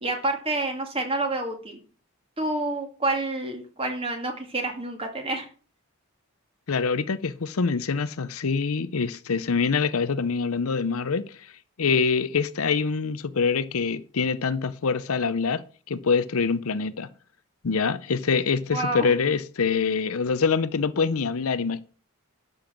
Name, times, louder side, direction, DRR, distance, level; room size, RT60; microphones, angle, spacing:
voice 1, 0.0-1.8 2.4-5.5 18.7-19.1, right 2 dB, 25° right, 2.3 m, -28 dB
voice 2, 6.7-11.3 11.8-17.1 17.6-21.8, left 5 dB, 70° left, 0.7 m, -25 dB
12.0 x 5.6 x 7.3 m
head